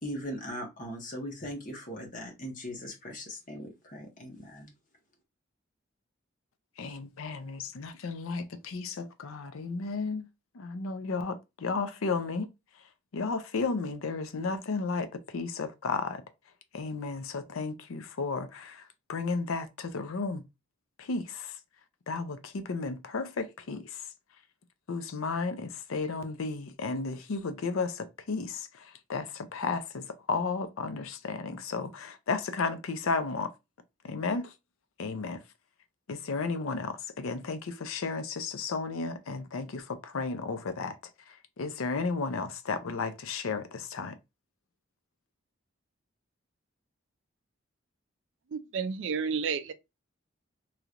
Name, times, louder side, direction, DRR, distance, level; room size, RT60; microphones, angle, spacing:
voice 1, 0.0-4.7, equal, 40° left, 1.1 m, -39 dB
voice 2, 6.8-10.3 10.6-12.5 13.1-16.2 16.7-18.8 19.1-20.4 21.0-21.5 22.1-24.0 24.9-28.7 29.1-33.5 34.0-34.5 35.0-35.4 36.1-41.0 41.6-44.2, left 4 dB, 90° left, 0.5 m, -33 dB
voice 3, 48.5-49.7, right 6 dB, 65° right, 0.4 m, -31 dB
3.1 x 2.9 x 2.4 m
head